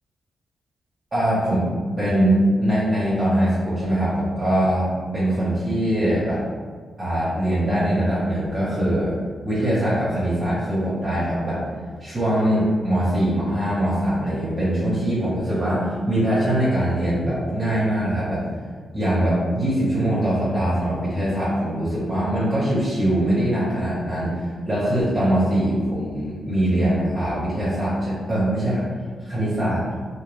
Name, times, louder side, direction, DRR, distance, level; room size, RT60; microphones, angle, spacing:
voice 1, 1.1-1.6 2.0-4.9 5.1-6.4 7.0-9.1 9.4-11.6 12.0-18.5 18.9-28.8 29.3-29.8, right 1 dB, 35° right, -10 dB, 0.8 m, -22 dB
2.2 x 2.2 x 3.1 m, 1.6 s
cardioid pair, 100°, 0 cm